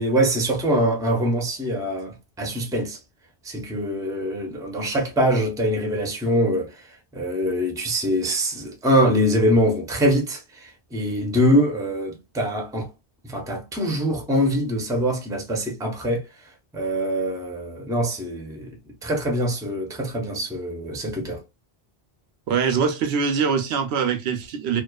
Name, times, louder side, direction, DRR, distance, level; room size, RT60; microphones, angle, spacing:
voice 1, 0.0-3.0 3.4-6.9 7.1-12.9 13.2-16.2 16.7-18.7 19.0-21.4, equal, 5° right, 0.5 m, -23 dB
voice 2, 22.5-24.8, right 6 dB, 80° right, 0.8 m, -23 dB
2.5 x 2.3 x 2.2 m
omnidirectional pair, 1.1 m